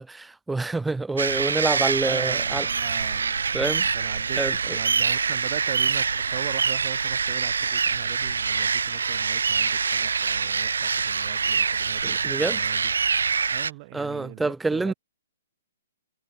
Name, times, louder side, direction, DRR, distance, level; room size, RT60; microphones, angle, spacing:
voice 1, 0.0-2.7 3.5-3.9 4.4-4.8 12.0-12.6 13.9-14.9, right 3 dB, 5° right, 2.7 m, -27 dB
sound 1, 1.2-13.7, right 5 dB, 75° right, 4.1 m, -25 dB
voice 2, 2.0-3.4 3.9-12.9 13.5-14.9, right 26 dB, 40° right, 6.3 m, -40 dB
hypercardioid pair, 130°, 0 cm